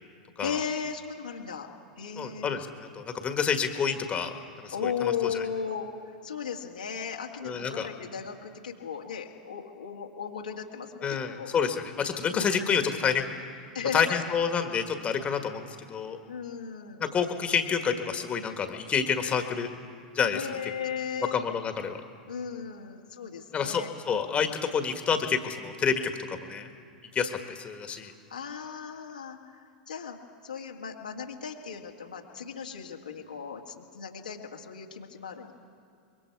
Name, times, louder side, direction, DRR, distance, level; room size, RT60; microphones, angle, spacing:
voice 1, 0.4-1.7 2.0-2.6 4.7-5.9 6.2-11.5 12.2-12.6 13.7-14.4 16.3-17.0 20.3-21.4 22.3-23.9 28.1-29.6 29.9-30.2 30.4-35.5, left 7 dB, 90° left, 0 dB, 2.0 m, -36 dB
voice 2, 2.2-5.3 7.4-7.9 11.0-13.3 13.9-16.2 17.0-19.7 20.1-20.4 21.3-22.0 23.5-26.7 27.1-28.1, left 6 dB, 30° left, 6 dB, 1.7 m, -28 dB
24.5 x 22.5 x 4.8 m, 2.4 s
hypercardioid pair, 95°, 4 cm